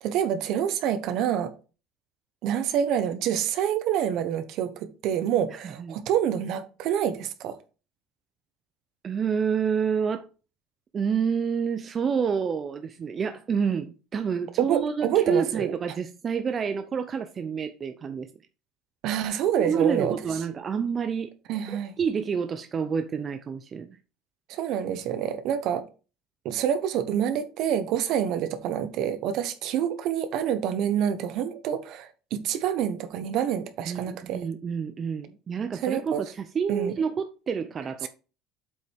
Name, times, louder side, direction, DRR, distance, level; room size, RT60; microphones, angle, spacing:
voice 1, 0.0-1.5 2.4-7.6 14.6-15.7 19.0-20.2 21.5-21.9 24.5-25.8 26.4-34.4 35.8-36.2 36.7-36.9, right 9 dB, 55° right, 1.0 m, -27 dB
voice 2, 9.0-10.3 10.9-18.3 19.6-21.3 22.0-24.0 33.9-38.1, right 6 dB, 25° right, 0.5 m, -28 dB
7.7 x 5.4 x 3.5 m
cardioid pair, 160°, 0 cm